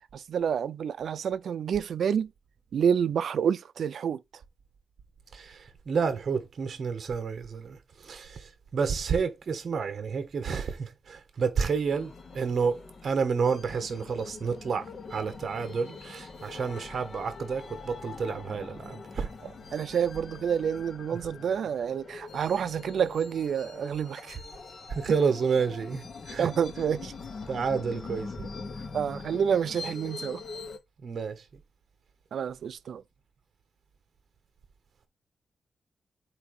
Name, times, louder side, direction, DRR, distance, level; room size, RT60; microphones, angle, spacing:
voice 1, 0.1-2.3 2.7-4.2 19.7-24.4 25.1-25.2 26.4-27.1 28.9-30.4 32.3-33.0, right 7 dB, 75° right, 0.5 m, -28 dB
voice 2, 5.3-14.8 15.1-19.3 24.9-26.5 27.5-28.5 31.0-31.4, right 5 dB, 55° right, 1.5 m, -30 dB
sound 1, 11.9-30.8, left 4 dB, 50° left, 1.2 m, -43 dB
8.2 x 2.8 x 5.0 m
wide cardioid pair, 150°, 0 cm